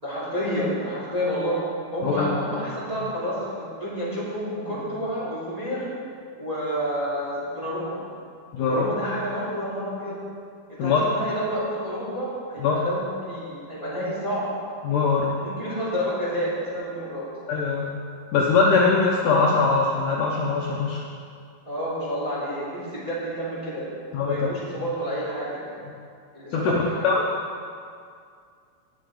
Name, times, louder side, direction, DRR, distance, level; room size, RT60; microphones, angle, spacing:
voice 1, 0.0-1.6 1.9-5.9 6.4-8.0 8.6-10.2 10.7-14.5 15.4-17.3 21.7-23.9 24.2-25.8 26.3-27.0, equal, 10° right, -8 dB, 2.8 m, -29 dB
voice 2, 2.0-2.6 8.5-8.8 10.8-11.0 12.6-12.8 14.8-15.3 17.5-18.0 18.3-21.0 24.1-24.4 26.5-27.2, left 4 dB, 70° left, -3 dB, 2.2 m, -22 dB
18.5 x 7.7 x 3.9 m, 2.3 s
omnidirectional pair, 4.4 m